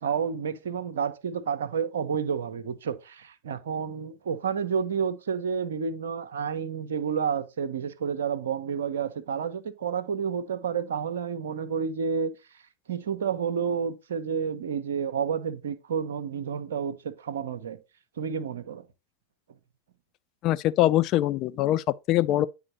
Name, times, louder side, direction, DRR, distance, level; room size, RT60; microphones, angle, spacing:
voice 1, 0.0-12.3 12.9-17.8 18.2-18.8, right 6 dB, 60° right, 0.7 m, -30 dB
voice 2, 20.4-22.5, left 14 dB, 35° left, 0.4 m, -23 dB
9.7 x 3.7 x 4.2 m
figure-of-eight pair, 90°, 0 cm